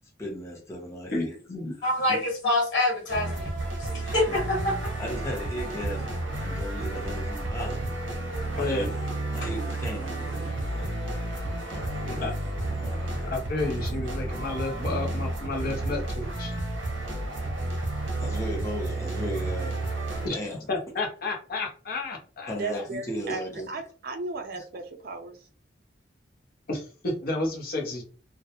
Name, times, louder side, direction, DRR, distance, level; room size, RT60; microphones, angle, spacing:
voice 1, 0.2-1.4 1.7-2.2 4.0-4.3 5.0-7.9 8.5-9.0 9.3-10.9 11.7-13.2 18.2-19.8 20.3-20.7 22.5-23.7 24.5-24.6, equal, 15° left, 0.7 m, -37 dB
voice 2, 1.1-1.7 8.6-8.9 12.1-12.3 13.2-16.5 20.2-20.4 20.7-22.8 26.7-28.0, left 2 dB, 55° left, 0.7 m, -31 dB
voice 3, 1.8-3.5 3.8-4.9 8.3-8.4 9.3-9.5, left 1 dB, 70° left, 1.3 m, -26 dB
sound 1, 3.1-20.3, right 2 dB, 85° right, 0.7 m, -31 dB
voice 4, 22.6-23.4 23.7-25.4, right 3 dB, 55° right, 0.4 m, -35 dB
2.2 x 2.0 x 2.8 m
head